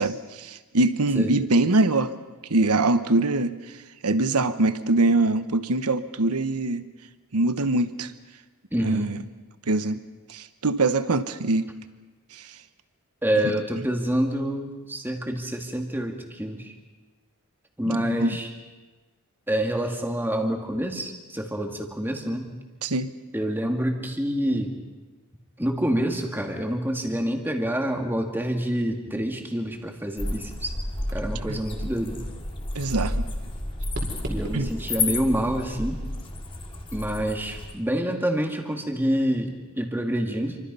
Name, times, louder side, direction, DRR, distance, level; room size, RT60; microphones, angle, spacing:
voice 1, 0.0-2.1 2.5-3.5 4.0-6.8 7.3-8.1 8.8-9.2 9.7-10.0 10.3-11.7 12.3-12.4 17.8-18.4 22.8-23.1 31.5-31.6 32.7-33.2 34.5-34.7, right 2 dB, 90° right, 12 dB, 1.2 m, -23 dB
voice 2, 8.7-9.1 13.2-16.7 17.8-18.5 19.5-22.5 23.3-24.7 25.6-30.7 31.1-32.2 34.3-36.0 36.9-40.6, equal, 10° right, 3 dB, 2.4 m, -27 dB
sound 1, 29.6-37.3, right 1 dB, 50° right, 4.5 m, -42 dB
sound 2, 30.2-37.7, left 2 dB, 25° left, 2.5 m, -31 dB
28.5 x 25.0 x 5.6 m, 1.2 s
head